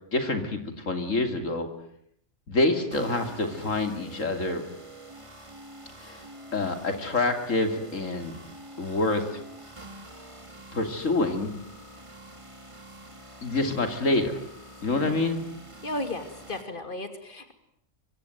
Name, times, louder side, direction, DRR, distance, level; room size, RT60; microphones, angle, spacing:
voice 1, 0.1-1.7 2.5-4.6 6.0-6.2 6.5-8.4 8.8-9.4 10.7-11.5 13.4-14.4 14.8-15.4, left 2 dB, 90° left, 6 dB, 3.2 m, -27 dB
sound 1, 2.9-16.6, right 1 dB, 25° right, 2.8 m, -46 dB
voice 2, 14.9-15.2 15.8-17.5, left 2 dB, 40° left, 7 dB, 2.9 m, -34 dB
25.0 x 24.0 x 9.3 m, 0.71 s
omnidirectional pair, 1.3 m